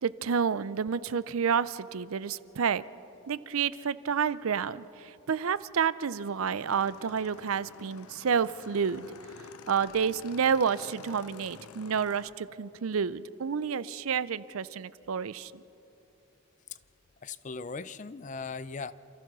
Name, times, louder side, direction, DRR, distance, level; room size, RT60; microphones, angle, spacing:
voice 1, 0.0-2.8 3.3-9.1 9.7-15.6, right 6 dB, 75° right, 17 dB, 0.5 m, -29 dB
Motorcycle / Engine, 6.4-12.3, left 5 dB, 90° left, 0.8 m, -50 dB
voice 2, 17.2-18.9, left 4 dB, 35° left, 16 dB, 0.4 m, -38 dB
28.5 x 15.0 x 6.2 m, 3.0 s
head